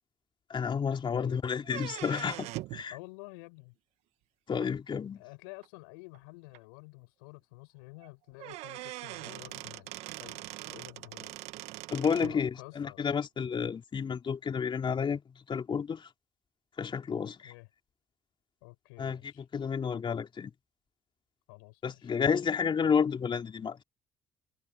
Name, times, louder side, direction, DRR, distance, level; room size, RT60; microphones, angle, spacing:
voice 1, 0.5-2.9 4.5-5.2 11.9-12.5 12.8-15.2 15.5-16.1 16.8-17.5 19.0-19.2 19.5-20.5 21.8-23.8, left 6 dB, 45° left, 3.3 m, -30 dB
sound 1, 1.6-2.8 4.6-4.7 5.6-5.7 6.1-6.2 6.5-6.6 8.0-8.1 8.4-12.4, right 18 dB, 75° right, 1.8 m, -42 dB
voice 2, 2.9-3.7 5.1-11.4 12.2-13.1 17.2-17.7 18.6-19.5 21.5-22.1, left 29 dB, 85° left, 7.1 m, -50 dB
hypercardioid pair, 50°, 11 cm